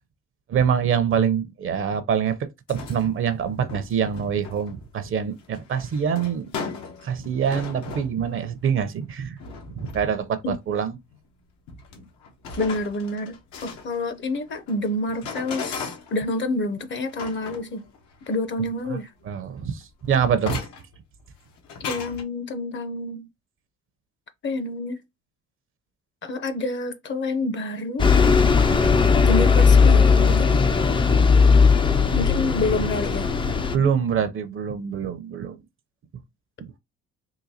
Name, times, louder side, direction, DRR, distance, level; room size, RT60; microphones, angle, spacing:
voice 1, 0.5-2.4 2.7-6.5 7.0-9.4 9.7-11.0 18.9-19.0 19.3-20.6 31.9-32.1 33.7-35.6, right 7 dB, 45° right, 0.6 m, -25 dB
sound 1, 2.7-3.2 3.7-8.8 9.4-10.5 11.1-11.2 11.7-16.4 16.9-18.5 18.8-18.9 19.2-21.0 21.4-22.2, left 4 dB, 80° left, 0.9 m, -37 dB
voice 2, 12.6-13.3 13.6-17.8 18.3-19.1 21.8-23.3 24.4-25.0 26.2-28.1 29.2-30.6 32.1-33.3, left 2 dB, 40° left, 0.7 m, -28 dB
Bus, 28.0-33.8, left 5 dB, 20° left, 0.3 m, -17 dB
3.9 x 2.6 x 2.7 m
cardioid pair, 85°, 29 cm